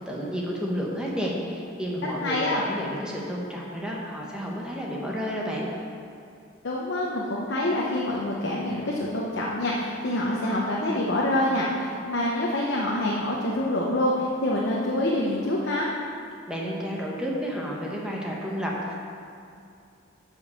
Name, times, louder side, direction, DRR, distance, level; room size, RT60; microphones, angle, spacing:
voice 1, 0.0-5.7 16.5-18.9, equal, 5° right, -4 dB, 1.0 m, -31 dB
voice 2, 2.2-2.6 6.6-15.9, left 1 dB, 60° left, -4 dB, 0.9 m, -26 dB
7.6 x 5.4 x 6.8 m, 2.5 s
head